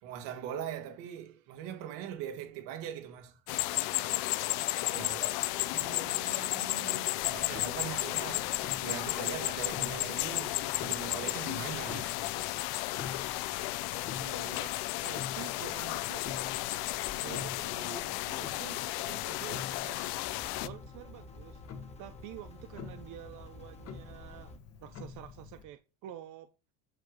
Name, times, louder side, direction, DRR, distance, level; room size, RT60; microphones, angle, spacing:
voice 1, 0.0-3.4 4.6-5.4 6.6-6.7 7.2-8.6 8.8-12.3 13.8-14.2 17.2-17.4, right 9 dB, 70° right, 1.9 m, -41 dB
sound 1, 3.5-20.7, left 18 dB, 60° left, 0.6 m, -33 dB
voice 2, 5.7-7.1 14.1-14.7 15.0-16.3 17.2-20.0 20.6-24.5 24.8-26.5, right 12 dB, 45° right, 0.7 m, -48 dB
Clock, 7.2-25.6, left 6 dB, 35° left, 1.3 m, -48 dB
sound 2, 20.2-24.6, left 1 dB, 15° left, 1.5 m, -52 dB
8.7 x 4.5 x 5.1 m
cardioid pair, 160°, 43 cm